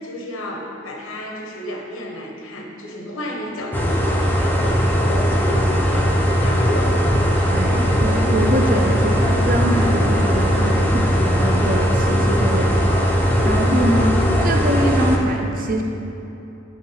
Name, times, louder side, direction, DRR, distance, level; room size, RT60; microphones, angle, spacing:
voice 1, 0.0-7.1, equal, 85° left, 1 dB, 1.0 m, -31 dB
sound 1, 3.7-15.2, equal, 10° left, 0.5 m, -18 dB
voice 2, 7.5-12.7 13.4-15.8, equal, 40° right, 2 dB, 0.6 m, -23 dB
8.5 x 3.2 x 5.7 m, 2.9 s
head